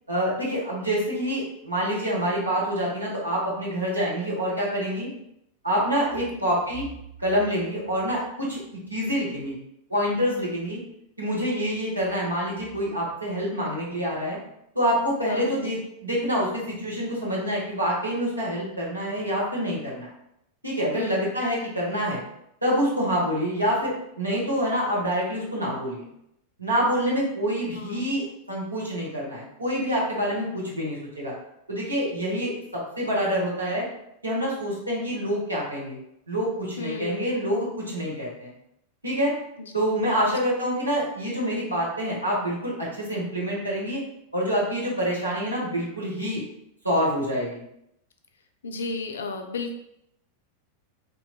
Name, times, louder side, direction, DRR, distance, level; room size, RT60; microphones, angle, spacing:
voice 1, 0.1-5.1 5.6-6.9 7.2-9.5 9.9-10.8 11.2-14.4 14.7-20.1 20.6-22.2 22.6-23.9 24.2-26.1 26.6-31.3 31.7-33.9 34.2-36.0 36.3-38.5 39.0-39.3 39.7-44.0 44.3-46.4 46.8-47.6, equal, 80° right, -5 dB, 0.9 m, -26 dB
voice 2, 20.9-21.3 27.7-28.1 36.8-37.3 39.6-39.7 40.3-40.4 48.6-49.8, left 3 dB, 65° left, 5 dB, 0.3 m, -33 dB
3.0 x 2.6 x 2.2 m, 0.79 s
figure-of-eight pair, 90°, 0 cm